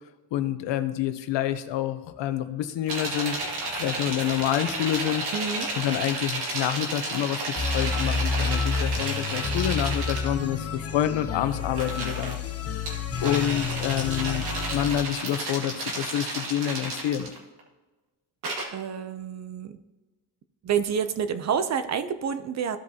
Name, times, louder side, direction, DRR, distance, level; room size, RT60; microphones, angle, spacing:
voice 1, 0.3-3.4 3.7-5.3 5.8-12.4 13.2-17.3, left 11 dB, 70° left, 10 dB, 0.9 m, -28 dB
sound 1, 2.9-10.3 11.6-12.4 12.9-17.6 18.4-18.6, right 2 dB, 60° right, 1.9 m, -32 dB
voice 2, 5.3-5.7 18.7-19.8 20.6-22.8, right 7 dB, 40° right, 11 dB, 0.6 m, -28 dB
sound 2, 7.6-15.1, left 5 dB, 30° left, 0.9 m, -30 dB
15.5 x 5.2 x 2.8 m, 1.2 s
cardioid pair, 150°, 45 cm